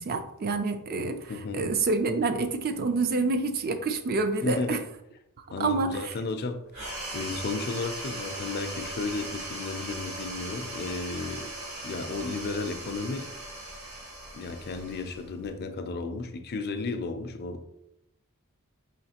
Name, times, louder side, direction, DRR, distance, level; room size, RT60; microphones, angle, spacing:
voice 1, 0.0-4.8 5.6-6.1, right 3 dB, 45° right, 8 dB, 0.4 m, -28 dB
voice 2, 1.3-1.7 4.4-4.8 5.5-11.5 11.8-13.3 14.3-17.7, left 3 dB, 45° left, 8 dB, 0.4 m, -33 dB
sound 1, 6.7-15.6, right 1 dB, 75° right, 1.6 m, -39 dB
4.6 x 3.2 x 2.8 m, 0.83 s
head